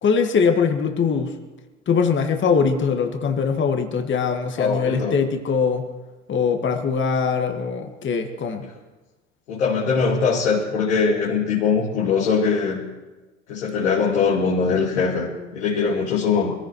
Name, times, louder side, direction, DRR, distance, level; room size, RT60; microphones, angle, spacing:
voice 1, 0.0-1.4 1.9-5.9 6.3-8.6, left 5 dB, 30° left, 5 dB, 1.7 m, -22 dB
voice 2, 4.6-5.1 9.5-12.8 13.5-16.5, left 5 dB, 75° left, -5 dB, 2.5 m, -21 dB
26.0 x 15.0 x 3.1 m, 1.2 s
figure-of-eight pair, 65°, 36 cm